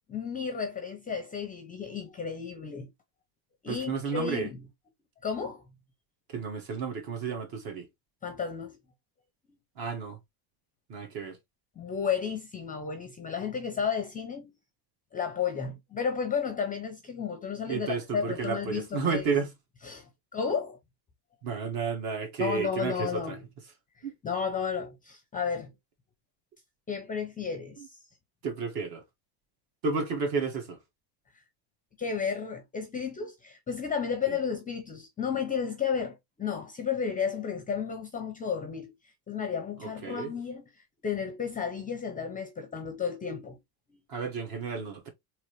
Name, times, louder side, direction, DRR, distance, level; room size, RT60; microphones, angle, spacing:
voice 1, 0.1-2.9 3.6-4.6 5.2-5.6 8.2-8.8 11.8-14.5 15.1-19.2 19.8-20.8 22.4-23.5 24.2-25.7 26.9-27.8 32.0-38.9 39.3-40.7 41.0-43.6 43.9-44.0, left 6 dB, 20° left, 0.5 m, -33 dB
voice 2, 3.7-4.5 6.3-7.8 9.8-10.2 10.9-11.4 17.7-19.5 21.4-23.4 24.0-24.1 27.8-27.9 28.4-29.0 29.8-30.8 34.3-34.4 39.8-40.3 44.1-45.1, right 5 dB, 50° right, 1.6 m, -32 dB
3.8 x 3.0 x 3.1 m
cardioid pair, 150°, 47 cm